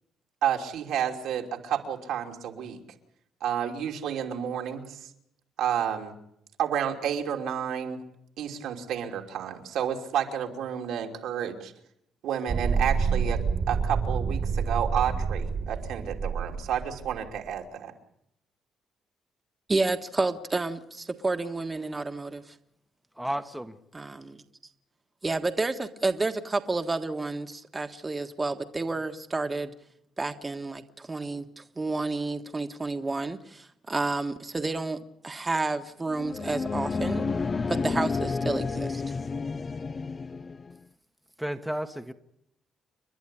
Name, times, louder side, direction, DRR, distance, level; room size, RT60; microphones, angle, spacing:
voice 1, 0.4-2.8 3.4-5.1 5.6-6.1 6.6-8.0 8.4-11.7 12.2-17.9, right 9 dB, 85° right, 3 dB, 2.9 m, -30 dB
sound 1, 12.5-17.3, right 5 dB, 45° right, 1.9 m, -28 dB
voice 2, 19.7-22.5 23.9-24.4 25.2-29.7 30.2-35.0 35.2-37.2 37.7-39.0, right 3 dB, 25° right, 6 dB, 1.5 m, -30 dB
voice 3, 23.2-23.8 41.4-42.1, right 1 dB, 5° right, 6 dB, 1.3 m, -32 dB
sound 2, 36.1-40.8, left 4 dB, 35° left, 0.8 m, -30 dB
29.5 x 11.5 x 10.0 m, 0.76 s
cardioid pair, 90°, 0 cm